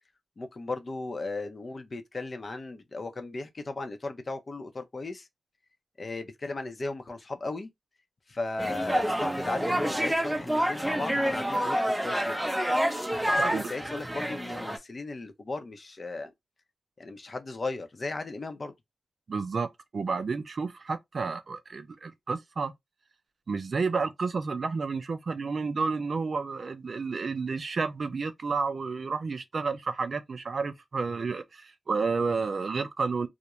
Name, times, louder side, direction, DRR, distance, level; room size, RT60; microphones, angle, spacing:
voice 1, 0.4-5.3 6.0-7.7 8.3-12.5 13.2-16.3 17.0-18.7, left 3 dB, 50° left, 0.6 m, -36 dB
sound 1, 8.6-14.8, equal, 5° right, 0.5 m, -28 dB
voice 2, 19.3-19.7 19.9-22.7 23.5-33.3, right 4 dB, 60° right, 0.4 m, -31 dB
2.4 x 2.1 x 2.9 m
cardioid pair, 55°, 0 cm